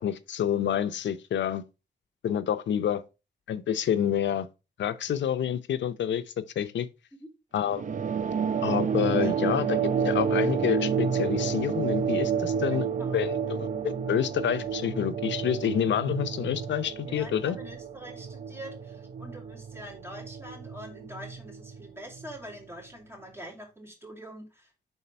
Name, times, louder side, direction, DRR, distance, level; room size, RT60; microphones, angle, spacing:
voice 1, 0.0-1.6 2.2-3.0 3.5-4.5 4.8-6.2 6.6-6.9 7.5-7.8 8.6-9.8 10.0-12.9 13.1-17.6, left 9 dB, 85° left, 0.6 m, -28 dB
sound 1, 7.7-22.6, right 6 dB, 45° right, 0.5 m, -30 dB
voice 2, 12.7-13.2 17.0-24.7, equal, 15° right, 2.4 m, -45 dB
5.5 x 4.0 x 4.2 m
wide cardioid pair, 110°, 18 cm